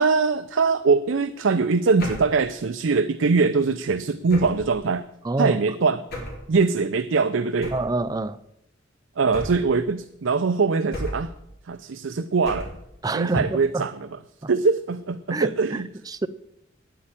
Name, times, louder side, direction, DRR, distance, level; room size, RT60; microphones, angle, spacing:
voice 1, 0.0-5.1 5.4-6.0 6.5-7.7 9.2-11.3 11.7-12.7 13.1-14.1 14.5-15.9, right 4 dB, 70° right, 0.5 m, -22 dB
sound 1, 2.0-2.4 4.3-4.7 6.1-6.5 7.6-8.0 9.3-9.8 10.9-11.4 12.4-12.9, equal, 55° left, 4.1 m, -34 dB
voice 2, 5.2-5.6 7.7-8.4 13.0-13.8 14.4-14.5 15.3-16.3, right 2 dB, 20° right, 0.5 m, -27 dB
9.7 x 8.5 x 8.8 m
head